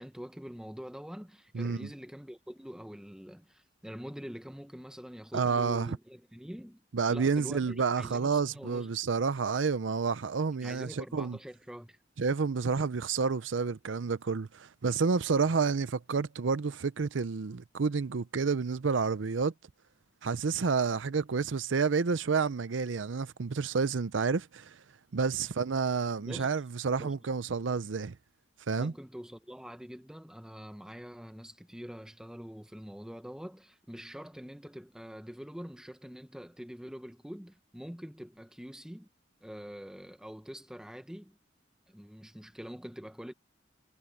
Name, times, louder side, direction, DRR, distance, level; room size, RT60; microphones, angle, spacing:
voice 1, 0.0-6.8 7.1-8.9 10.6-12.0 25.4-25.5 26.2-26.5 27.0-27.1 28.7-39.1 39.4-41.4 41.9-43.3, equal, 5° right, 0.7 m, -45 dB
voice 2, 1.5-1.9 5.3-6.0 6.9-11.4 12.2-19.5 20.2-24.8 25.1-28.2 28.7-28.9, right 5 dB, 80° right, 0.6 m, -29 dB
head